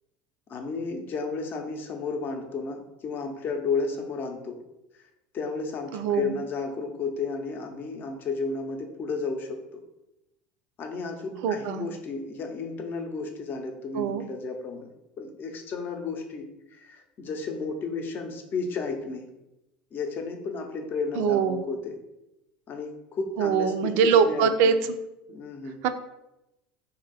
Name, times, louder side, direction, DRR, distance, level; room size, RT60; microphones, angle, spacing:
voice 1, 0.5-4.6 5.3-9.8 10.8-14.9 15.2-19.3 19.9-22.0 22.7-24.7 25.3-25.8, left 4 dB, 45° left, 4 dB, 0.7 m, -33 dB
voice 2, 5.9-6.4 11.4-11.9 13.9-14.2 21.2-21.6 23.4-24.9 25.8-25.9, right 6 dB, 65° right, 10 dB, 0.4 m, -23 dB
2.8 x 2.6 x 4.1 m, 0.92 s
hypercardioid pair, 85°, 5 cm